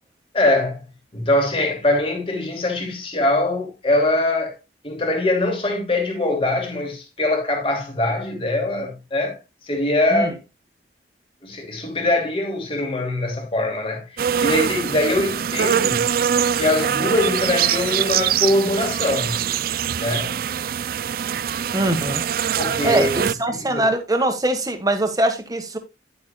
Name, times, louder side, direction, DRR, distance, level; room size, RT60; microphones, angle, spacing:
voice 1, 0.3-0.8 1.1-4.5 4.8-9.4 9.6-10.3 11.4-16.1 16.6-19.4 19.9-20.4 22.6-23.2 23.5-23.9, left 1 dB, 30° left, 2.6 m, -22 dB
sound 1, 14.2-23.3, right 8 dB, 55° right, 0.4 m, -23 dB
voice 2, 21.7-22.2 22.8-25.8, right 1 dB, 20° right, 1.5 m, -22 dB
11.0 x 8.7 x 2.3 m
head